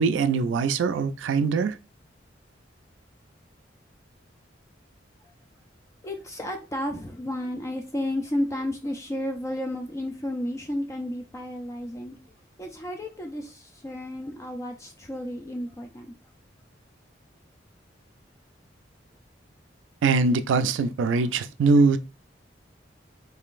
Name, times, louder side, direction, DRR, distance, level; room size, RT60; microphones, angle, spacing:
voice 1, 0.0-1.8 20.0-22.0, right 4 dB, 90° right, 0.3 m, -22 dB
voice 2, 6.0-12.2 12.6-16.1, left 1 dB, 15° left, 0.4 m, -32 dB
3.7 x 3.2 x 2.4 m
head